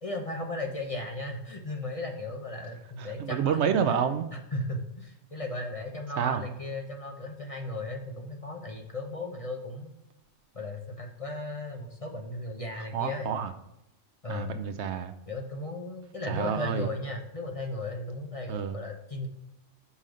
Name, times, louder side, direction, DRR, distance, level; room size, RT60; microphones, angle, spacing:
voice 1, 0.0-3.6 4.5-9.9 10.5-13.3 14.2-14.5 15.3-19.3, left 2 dB, 35° left, 2 dB, 0.8 m, -36 dB
voice 2, 3.0-4.3 6.2-6.4 12.8-13.5 14.3-15.1 16.3-16.9 18.5-18.8, right 7 dB, 70° right, 9 dB, 0.8 m, -29 dB
6.1 x 5.6 x 5.1 m, 0.86 s
omnidirectional pair, 1.3 m